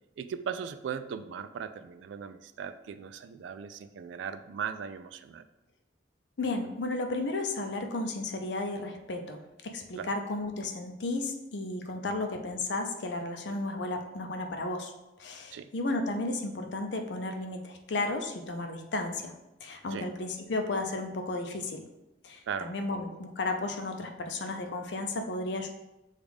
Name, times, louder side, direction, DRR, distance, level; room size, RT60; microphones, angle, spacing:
voice 1, 0.2-5.5 10.0-10.1 11.9-12.3 15.5-15.7 19.9-20.1 22.5-22.7, right 7 dB, 90° right, 11 dB, 0.3 m, -38 dB
voice 2, 6.4-14.9 15.2-19.3 19.6-21.8 22.2-25.7, left 2 dB, 75° left, 5 dB, 0.6 m, -33 dB
6.3 x 2.4 x 3.5 m, 0.96 s
head